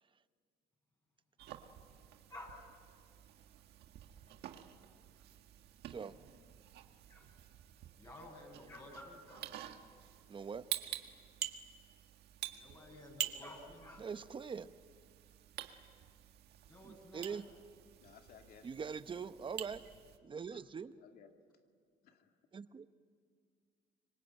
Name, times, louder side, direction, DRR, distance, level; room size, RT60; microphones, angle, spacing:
sound 1, 1.4-20.2, right 12 dB, 75° right, 1.7 m, -48 dB
voice 1, 5.9-6.2 10.3-10.6 14.0-14.7 16.8-17.4 18.6-19.8 20.2-20.9 22.5-22.9, right 6 dB, 30° right, 12 dB, 0.9 m, -43 dB
voice 2, 8.0-9.5 12.5-14.0 16.7-17.4, left 1 dB, 25° left, -2 dB, 7.0 m, -52 dB
voice 3, 18.0-18.7 20.5-20.6 20.9-21.4 22.0-22.3, left 7 dB, 65° left, 4 dB, 2.5 m, -60 dB
26.0 x 24.5 x 9.0 m, 2.1 s
cardioid pair, 110°, 17 cm